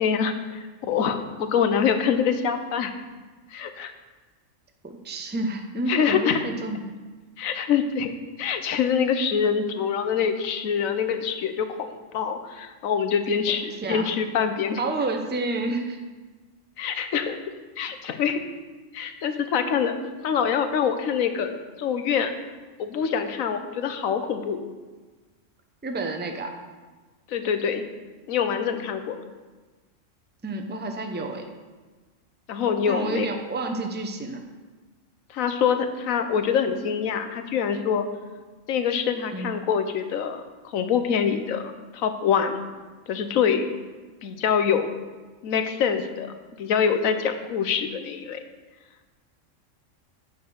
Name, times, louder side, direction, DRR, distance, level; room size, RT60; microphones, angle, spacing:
voice 1, 0.0-2.9 3.5-3.9 5.9-6.5 7.4-8.1 8.4-14.8 16.8-17.4 17.8-18.4 18.9-19.9 20.2-22.4 22.8-24.6 27.3-27.8 28.3-29.2 32.5-33.3 35.3-38.1 38.7-40.4 40.7-41.6 41.9-42.6 43.1-43.7 44.2-44.9 45.4-48.4, left 7 dB, 85° left, 8 dB, 1.2 m, -25 dB
voice 2, 4.8-6.8 13.8-14.1 14.8-16.0 25.8-26.5 30.4-31.4 32.9-34.4 39.3-39.5, right 2 dB, 10° right, 5 dB, 0.5 m, -29 dB
8.5 x 5.7 x 6.4 m, 1.3 s
omnidirectional pair, 1.4 m